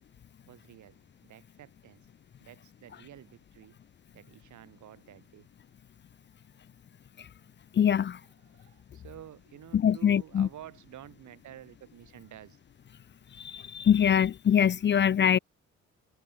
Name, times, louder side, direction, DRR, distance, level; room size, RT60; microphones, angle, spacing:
voice 1, 0.5-1.0 1.3-2.0 2.4-3.7 4.1-5.5 8.4-12.6, right 12 dB, 75° right, 4.8 m, -50 dB
voice 2, 7.8-8.2 9.7-10.5 13.4-15.4, left 8 dB, 40° left, 0.5 m, -23 dB
cardioid pair, 90°, 30 cm